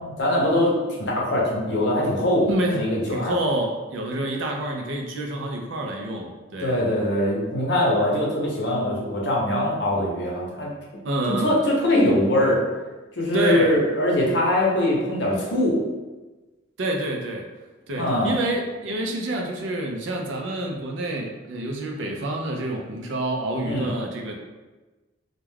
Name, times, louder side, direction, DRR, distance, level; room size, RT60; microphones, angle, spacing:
voice 1, 0.0-3.3 6.6-10.7 11.3-12.6 13.2-15.8 18.0-18.3 23.6-23.9, left 1 dB, 60° left, -3 dB, 0.7 m, -22 dB
voice 2, 2.4-6.7 11.0-11.6 13.3-13.8 16.8-17.5 17.9-24.4, right 1 dB, 75° right, 1 dB, 0.4 m, -28 dB
2.3 x 2.2 x 3.2 m, 1.2 s
head